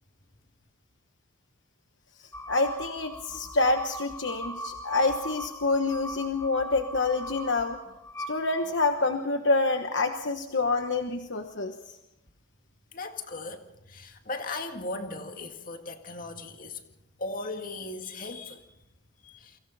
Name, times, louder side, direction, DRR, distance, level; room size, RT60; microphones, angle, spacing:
sound 1, 2.3-9.1, equal, 10° left, 1.1 m, -41 dB
voice 1, 2.5-7.8 8.3-11.7, left 3 dB, 60° left, 6 dB, 1.2 m, -27 dB
voice 2, 12.9-16.8 17.2-18.6 19.2-19.6, left 2 dB, 45° left, 5 dB, 2.0 m, -37 dB
29.0 x 24.0 x 4.2 m, 0.89 s
head